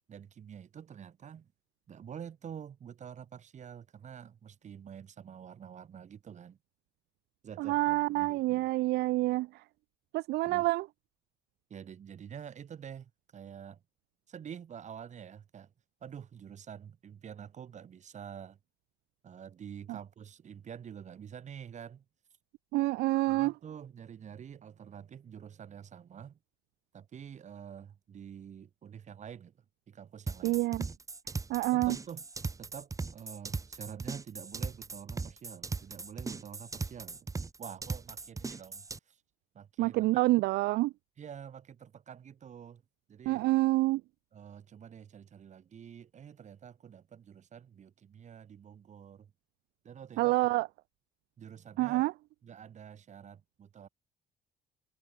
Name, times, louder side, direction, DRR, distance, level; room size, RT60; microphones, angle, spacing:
voice 1, 0.1-1.5 1.9-6.6 7.4-8.7 10.4-10.7 11.7-13.8 14.3-15.7 16.0-18.6 19.2-22.0 23.3-26.4 26.9-29.5 29.9-30.6 31.7-32.3 32.6-37.3 37.6-39.2 39.5-40.1 41.2-42.8 43.1-43.5 44.3-49.3 49.8-50.4 51.4-52.0 52.4-53.9, right 8 dB, 45° right, 3.6 m, -47 dB
voice 2, 7.6-9.6 10.1-10.9 22.7-23.5 30.4-30.9 31.5-32.0 39.8-40.9 43.3-44.0 50.2-50.7 51.8-52.1, right 19 dB, 75° right, 0.4 m, -27 dB
sound 1, 30.3-39.0, right 4 dB, 20° right, 1.2 m, -38 dB
cardioid pair, 110°, 17 cm